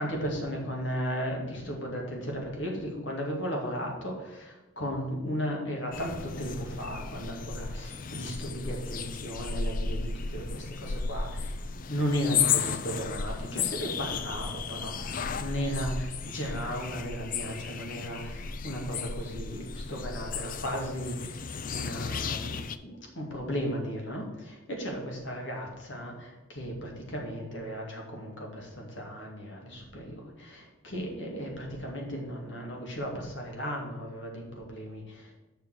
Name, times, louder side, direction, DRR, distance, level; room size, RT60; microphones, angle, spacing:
voice 1, 0.0-11.6 11.9-35.3, equal, 60° left, 0 dB, 2.4 m, -35 dB
sound 1, 5.9-22.8, left 6 dB, 40° left, 0.4 m, -34 dB
6.9 x 5.8 x 6.7 m, 1.1 s
head